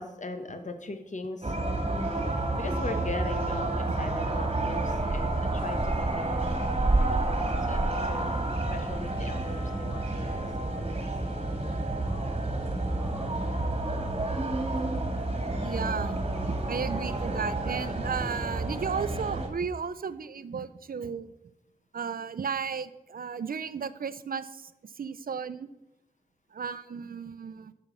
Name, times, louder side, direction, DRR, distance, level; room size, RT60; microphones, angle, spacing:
voice 1, 0.0-1.6 2.5-6.6 7.0-8.3 8.7-11.0, left 2 dB, 55° left, 7 dB, 1.2 m, -39 dB
sound 1, 1.4-19.5, right 2 dB, 40° right, 2.0 m, -29 dB
voice 2, 15.6-16.2 16.7-21.3 21.9-24.7 25.0-25.7 26.5-27.7, right 6 dB, 75° right, 14 dB, 0.5 m, -34 dB
9.0 x 6.5 x 6.0 m, 0.92 s
wide cardioid pair, 60°, 15 cm